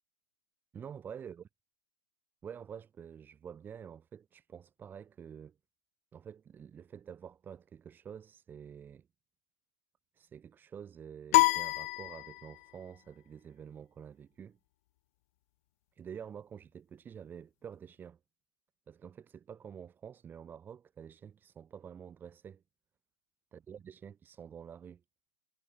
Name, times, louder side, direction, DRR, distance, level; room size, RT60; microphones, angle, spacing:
voice 1, 0.7-1.4 2.4-5.6 6.1-9.1 10.1-14.6 15.9-18.2 18.9-22.6 23.5-25.0, right 8 dB, 15° right, 5.7 m, -48 dB
sound 1, 11.3-12.8, left 21 dB, 40° left, 0.5 m, -27 dB
hypercardioid pair, 125°, 11 cm